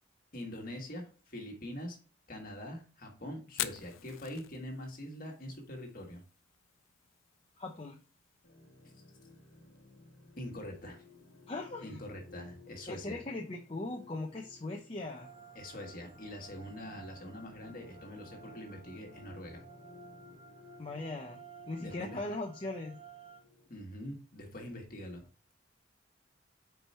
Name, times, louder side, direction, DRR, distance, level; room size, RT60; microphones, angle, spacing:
voice 1, 0.3-2.0 2.3-6.2 10.4-11.0 11.8-13.2 15.5-19.6 21.8-22.2 23.7-25.2, left 1 dB, 45° left, 1 dB, 1.6 m, -44 dB
Fire, 3.5-17.3, left 13 dB, 85° left, 0.4 m, -49 dB
voice 2, 7.6-8.0 11.5-12.0 12.9-15.3 20.8-21.4 21.7-23.0, left 2 dB, 30° left, 0 dB, 0.6 m, -39 dB
sound 1, 8.4-23.7, left 4 dB, 65° left, 1.3 m, -57 dB
sound 2, 15.0-23.4, right 7 dB, 25° right, 0.8 m, -55 dB
5.0 x 4.7 x 4.3 m, 0.36 s
head